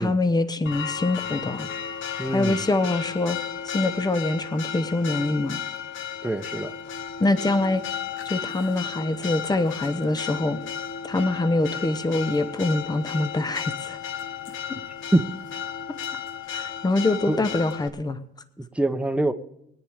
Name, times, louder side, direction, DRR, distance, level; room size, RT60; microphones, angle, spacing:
voice 1, 0.0-1.7 2.3-3.4 3.6-5.6 7.2-7.8 8.2-10.6 11.0-14.0 16.5-18.2, left 2 dB, 20° left, 11 dB, 1.1 m, -24 dB
Church bell, 0.7-17.9, left 8 dB, 75° left, 1.3 m, -34 dB
voice 2, 2.2-2.6 6.2-6.7 15.1-15.3 17.3-17.5 18.6-19.3, right 1 dB, 5° right, 8 dB, 1.1 m, -24 dB
22.0 x 9.8 x 3.6 m, 0.77 s
cardioid pair, 90°, 20 cm